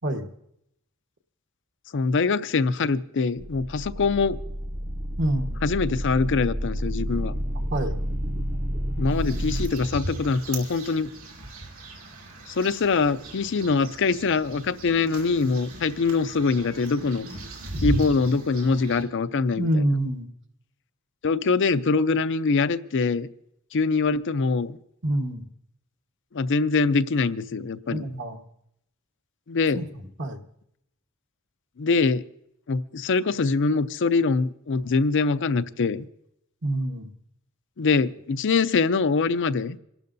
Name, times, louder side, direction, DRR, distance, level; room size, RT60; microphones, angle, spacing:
voice 1, 1.9-4.4 5.6-7.3 9.0-11.1 12.5-17.3 17.8-19.8 21.2-23.3 23.7-24.8 26.3-28.0 29.5-29.8 31.8-32.2 32.7-36.1 37.8-39.8, left 4 dB, 60° left, 14 dB, 0.5 m, -23 dB
sound 1, 3.4-9.7, equal, 35° right, 0.8 m, -30 dB
voice 2, 5.2-5.6 7.7-8.0 19.6-20.3 25.0-25.4 27.9-28.4 29.7-30.4 36.6-37.1, right 1 dB, 55° right, 4 dB, 1.3 m, -27 dB
sound 2, 9.1-19.0, right 1 dB, 80° right, 2.7 m, -36 dB
27.5 x 12.0 x 2.6 m, 0.76 s
head